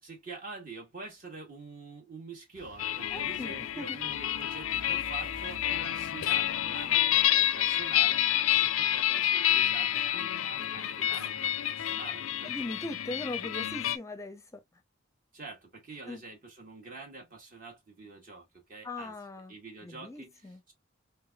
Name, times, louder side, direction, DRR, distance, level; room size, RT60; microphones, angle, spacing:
voice 1, 0.0-12.5 15.3-19.1 19.5-20.7, right 3 dB, 40° right, 1.2 m, -46 dB
sound 1, 2.5-7.9, right 1 dB, 60° right, 0.6 m, -52 dB
sound 2, 2.8-14.0, left 12 dB, 80° left, 0.4 m, -29 dB
voice 2, 3.1-4.0 12.4-14.6 16.1-16.2 18.8-19.5 19.8-20.6, left 2 dB, 15° left, 0.5 m, -40 dB
3.4 x 3.3 x 2.2 m
head